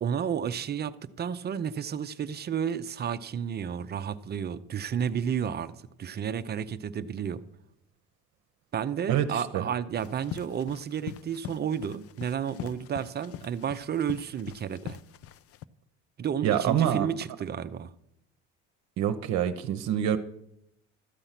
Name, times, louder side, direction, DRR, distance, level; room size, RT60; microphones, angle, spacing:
voice 1, 0.0-5.7 6.0-7.4 8.7-15.0 16.2-17.9, right 8 dB, 30° right, 13 dB, 0.6 m, -31 dB
voice 2, 9.1-9.7 16.4-17.1 19.0-20.2, right 10 dB, 60° right, 8 dB, 0.9 m, -26 dB
sound 1, 10.0-15.6, left 11 dB, 45° left, 0.5 m, -42 dB
13.5 x 7.8 x 5.8 m, 0.78 s
supercardioid pair, 105°, 31 cm